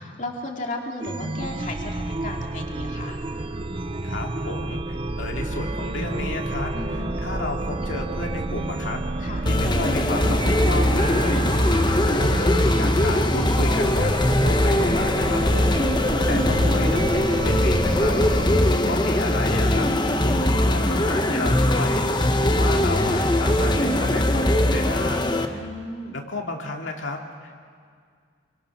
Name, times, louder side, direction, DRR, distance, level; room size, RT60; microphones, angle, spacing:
voice 1, 0.0-3.2 6.7-7.2 9.2-9.5 15.3-15.5 18.4-18.9 25.4-26.2, left 2 dB, 40° left, 1 dB, 2.2 m, -35 dB
Chime, 1.0-18.5, right 2 dB, 25° right, 0.5 m, -29 dB
voice 2, 4.0-14.1 14.4-15.9 16.3-19.9 20.2-25.7 26.1-27.5, left 2 dB, 70° left, 1 dB, 2.3 m, -33 dB
sound 1, 9.5-25.5, left 1 dB, 20° left, 0.9 m, -21 dB
27.5 x 25.0 x 6.0 m, 2.1 s
head